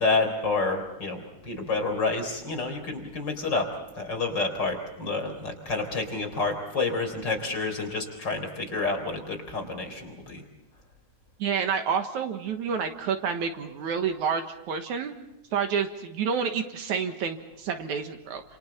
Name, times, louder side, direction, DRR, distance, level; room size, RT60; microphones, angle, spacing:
voice 1, 0.0-10.4, left 3 dB, 35° left, 3 dB, 4.5 m, -29 dB
voice 2, 11.4-15.1 15.5-18.4, right 6 dB, 70° right, 6 dB, 2.7 m, -29 dB
28.5 x 27.5 x 4.4 m, 0.92 s
omnidirectional pair, 3.6 m